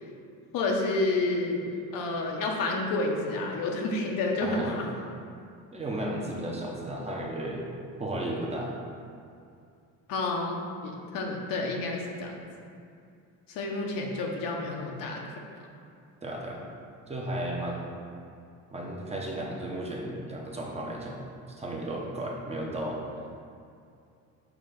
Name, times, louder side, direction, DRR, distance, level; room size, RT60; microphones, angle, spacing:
voice 1, 0.5-4.9 10.1-12.4 13.5-15.4, left 2 dB, 75° left, 0 dB, 1.0 m, -30 dB
voice 2, 4.4-4.7 5.7-7.7 8.0-8.7 16.2-16.6 17.1-17.9 18.7-21.2 21.6-23.0, right 1 dB, 20° right, -2 dB, 0.8 m, -34 dB
6.1 x 2.9 x 5.1 m, 2.4 s
cardioid pair, 130°, 33 cm